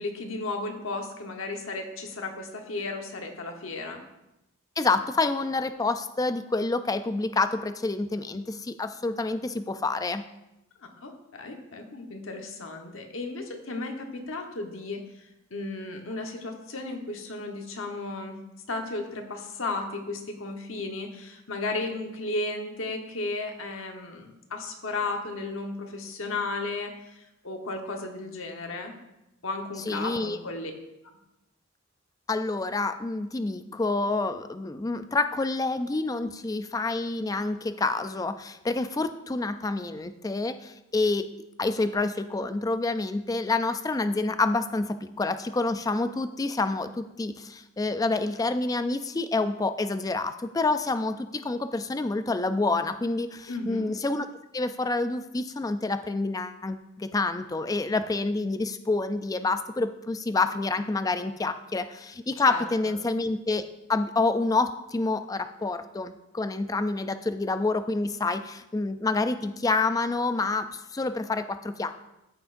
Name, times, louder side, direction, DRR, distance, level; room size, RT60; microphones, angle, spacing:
voice 1, 0.0-4.0 11.0-18.4 18.7-28.9 29.4-30.7 53.5-53.9 62.4-63.0, left 2 dB, 65° left, 3 dB, 1.1 m, -34 dB
voice 2, 4.8-10.2 29.9-30.4 32.3-41.3 41.6-54.3 54.5-63.6 63.9-72.0, left 3 dB, 15° left, 10 dB, 0.3 m, -28 dB
14.0 x 6.0 x 2.6 m, 0.92 s
head